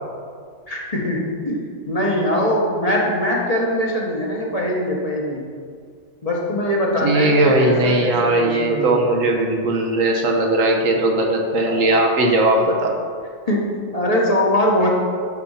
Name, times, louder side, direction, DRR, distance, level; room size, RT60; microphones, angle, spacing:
voice 1, 0.7-5.5 6.2-9.1 11.7-11.8 13.5-14.9, left 1 dB, 30° left, -4 dB, 1.5 m, -22 dB
voice 2, 7.0-13.0, right 2 dB, 70° right, 2 dB, 1.3 m, -18 dB
10.5 x 4.3 x 5.7 m, 2.1 s
omnidirectional pair, 1.4 m